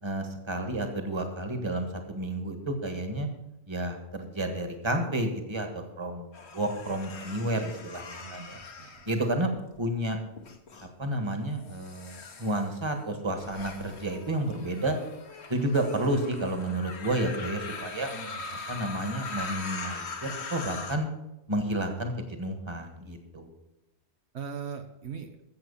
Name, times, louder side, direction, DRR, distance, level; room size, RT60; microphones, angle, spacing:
voice 1, 0.0-3.3 3.7-6.3 6.5-8.6 9.1-9.5 9.8-10.2 11.0-15.0 15.5-18.1 18.7-21.1 21.5-23.5, right 1 dB, 25° right, 6 dB, 1.6 m, -31 dB
sound 1, 6.3-9.8 10.4-10.9 11.6-21.0, left 4 dB, 65° left, 1.5 m, -41 dB
voice 2, 8.2-9.1 18.1-18.6 24.3-25.3, right 6 dB, 70° right, 5 dB, 1.2 m, -40 dB
14.5 x 7.6 x 5.6 m, 0.94 s
omnidirectional pair, 1.2 m